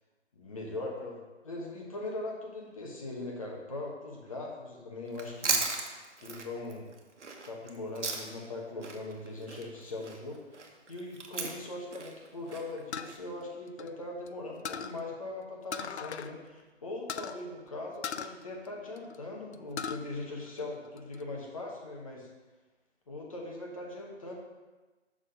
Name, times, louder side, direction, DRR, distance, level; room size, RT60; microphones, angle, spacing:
voice 1, 0.3-5.6 6.2-6.8 7.4-10.4 10.9-22.3 23.1-24.3, left 2 dB, 30° left, -2 dB, 1.1 m, -40 dB
Chewing mastication, 5.1-8.5 8.8-13.2, right 4 dB, 75° right, 1.2 m, -36 dB
sound 1, 12.9-14.3 14.7-15.0 15.7-16.3 16.6-16.7 17.1-17.4 18.0-19.2 19.5-20.0 20.5-21.2, left 7 dB, 70° left, 0.5 m, -38 dB
6.1 x 4.1 x 5.4 m, 1.2 s
hypercardioid pair, 170°, 35 cm